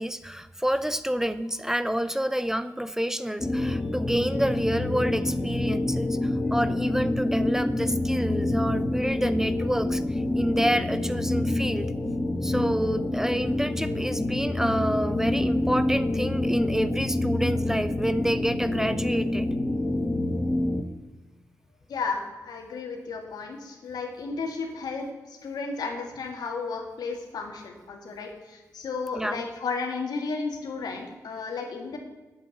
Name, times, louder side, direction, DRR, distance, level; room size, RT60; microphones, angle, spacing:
voice 1, 0.0-10.0 10.3-11.9 12.4-19.5 29.1-29.4, equal, 5° right, 13 dB, 0.6 m, -28 dB
sound 1, 3.4-20.8, left 1 dB, 25° left, 1.3 m, -27 dB
voice 2, 21.9-32.0, left 4 dB, 85° left, 3 dB, 2.0 m, -33 dB
8.5 x 8.1 x 7.8 m, 1.2 s
cardioid pair, 55°, 7 cm